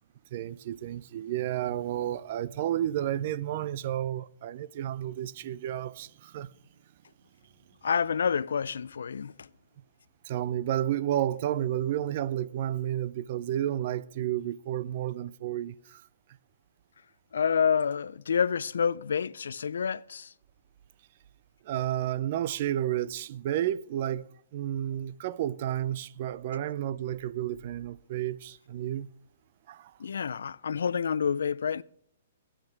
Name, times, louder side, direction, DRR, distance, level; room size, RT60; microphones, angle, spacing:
voice 1, 0.3-6.5 10.3-16.0 21.6-29.1 29.7-29.9, right 12 dB, 50° right, 0.4 m, -31 dB
voice 2, 7.8-9.5 17.3-20.3 30.0-31.8, left 7 dB, 85° left, 0.4 m, -28 dB
21.5 x 8.8 x 3.3 m
hypercardioid pair, 150°, 0 cm